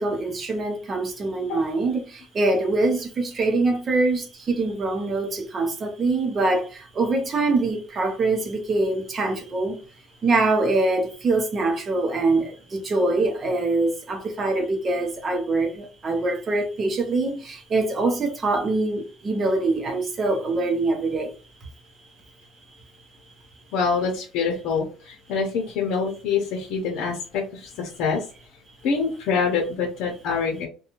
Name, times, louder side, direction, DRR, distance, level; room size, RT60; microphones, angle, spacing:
voice 1, 0.0-9.8 10.2-21.3, right 2 dB, 30° right, 0.7 m, -24 dB
voice 2, 23.7-28.2 28.8-30.7, left 5 dB, 70° left, 0.8 m, -25 dB
2.6 x 2.2 x 2.9 m
cardioid pair, 160°, 0 cm